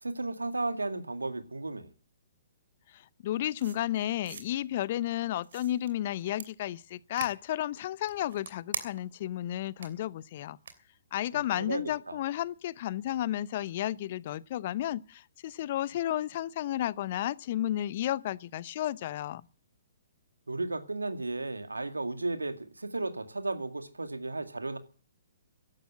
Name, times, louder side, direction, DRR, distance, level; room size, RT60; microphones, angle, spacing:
voice 1, 0.0-1.9 11.5-12.2 20.5-24.8, right 2 dB, 80° right, 2.1 m, -34 dB
voice 2, 2.9-10.6 11.1-19.4, left 13 dB, 45° left, 0.7 m, -32 dB
sound 1, 3.6-4.4 5.4-5.9 6.4-6.5 7.2-7.3 8.0-9.2 9.8-9.9 10.6-10.7, right 6 dB, 60° right, 3.0 m, -40 dB
15.5 x 11.5 x 7.8 m
figure-of-eight pair, 120°, 0 cm